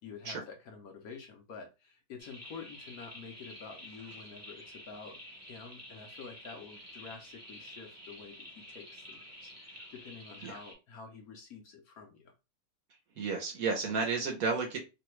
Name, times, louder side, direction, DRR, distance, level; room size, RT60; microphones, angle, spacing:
voice 1, 0.0-12.3, left 5 dB, 65° left, 3 dB, 1.0 m, -49 dB
sound 1, 2.2-10.7, equal, 15° right, 0.6 m, -50 dB
voice 2, 13.2-14.8, right 4 dB, 60° right, 3 dB, 1.0 m, -32 dB
3.2 x 2.2 x 3.0 m, 0.27 s
omnidirectional pair, 1.9 m